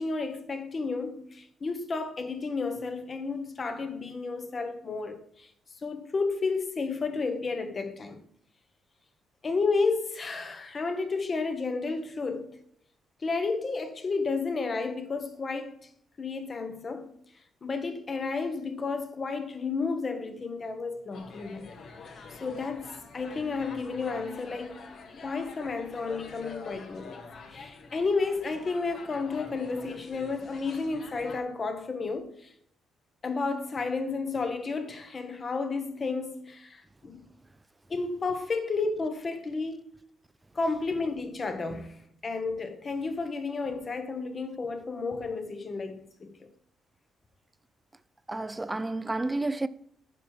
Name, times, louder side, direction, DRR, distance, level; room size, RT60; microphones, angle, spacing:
voice 1, 0.0-5.5 5.8-8.2 9.4-12.6 13.2-15.7 16.2-17.1 17.6-21.8 22.4-24.9 25.2-32.4 33.2-37.2 37.9-39.8 40.5-46.5, left 4 dB, 35° left, 1.2 m, -32 dB
sound 1, 21.1-31.4, left 4 dB, 60° left, 1.3 m, -46 dB
voice 2, 48.3-49.7, right 2 dB, 15° right, 0.5 m, -30 dB
9.4 x 5.9 x 4.5 m
cardioid pair, 90°, 0 cm